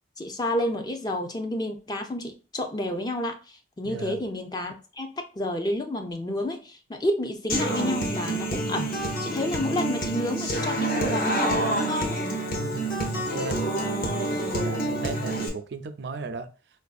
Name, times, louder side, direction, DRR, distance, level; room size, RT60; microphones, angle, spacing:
voice 1, 0.2-12.2, left 1 dB, 20° left, 0.4 m, -30 dB
Human voice / Acoustic guitar, 7.5-15.5, right 1 dB, 50° left, 0.8 m, -27 dB
Wind instrument woodwind instrument, 10.5-15.0, left 1 dB, 80° left, 0.9 m, -46 dB
voice 2, 12.6-13.6 14.1-16.5, right 3 dB, 60° right, 0.4 m, -36 dB
4.4 x 2.5 x 2.3 m
head